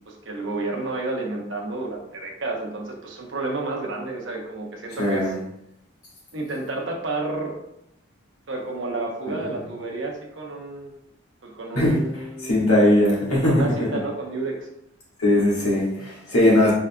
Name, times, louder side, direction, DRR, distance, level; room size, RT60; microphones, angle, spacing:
voice 1, 0.1-5.3 6.3-7.5 8.5-10.9 11.4-12.7 13.3-14.7, right 2 dB, 60° right, 0 dB, 0.8 m, -30 dB
voice 2, 5.0-5.4 9.3-9.4 11.7-12.0 12.4-13.9 15.2-16.7, left 1 dB, 85° left, -4 dB, 1.5 m, -19 dB
4.7 x 3.7 x 2.2 m, 0.80 s
head